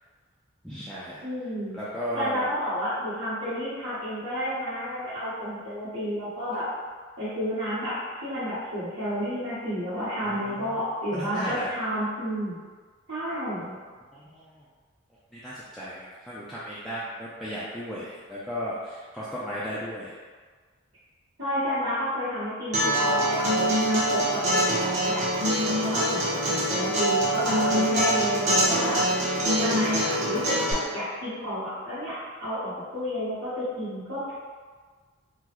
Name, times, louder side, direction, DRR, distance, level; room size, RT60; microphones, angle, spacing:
voice 1, 0.6-1.2 1.7-2.5 10.2-10.8 11.2-11.7 14.1-14.6 15.3-20.2, equal, ahead, -10 dB, 0.3 m, -35 dB
voice 2, 1.2-1.8 2.1-6.7 7.2-12.6 13.1-13.7 21.4-25.3 25.6-29.0 29.6-34.3, equal, 75° right, -16 dB, 1.2 m, -31 dB
Acoustic guitar, 22.7-30.7, right 1 dB, 35° right, 0.8 m, -24 dB
3.7 x 2.1 x 3.0 m, 1.5 s
head